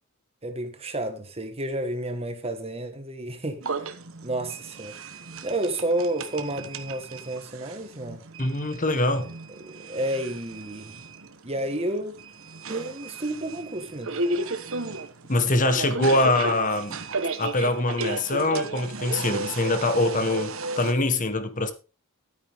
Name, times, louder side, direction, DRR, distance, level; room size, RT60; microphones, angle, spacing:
voice 1, 0.4-3.8 4.2-5.0 5.4-8.2 9.1-9.3 9.6-11.0 11.4-12.1 12.7-14.2, right 1 dB, 25° right, 1.6 m, -31 dB
sound 1, 3.6-20.9, right 3 dB, 60° right, 1.3 m, -34 dB
voice 2, 8.4-9.3 15.3-17.0 17.4-21.7, left 2 dB, 35° left, 1.4 m, -24 dB
12.5 x 9.2 x 3.6 m
head